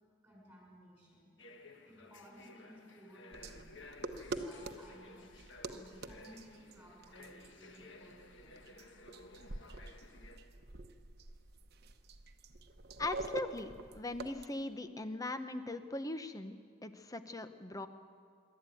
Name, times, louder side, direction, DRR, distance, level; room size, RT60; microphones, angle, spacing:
voice 1, 0.2-1.3 1.8-3.7 4.3-5.3 5.7-8.5, equal, 5° right, -3 dB, 5.7 m, -57 dB
sound 1, 1.4-10.4, left 2 dB, 60° left, 1.5 m, -56 dB
sound 2, 3.3-14.5, right 2 dB, 50° right, 1.0 m, -46 dB
voice 2, 13.0-17.9, left 2 dB, 15° left, 10 dB, 0.8 m, -40 dB
25.0 x 12.0 x 9.2 m, 2.2 s
head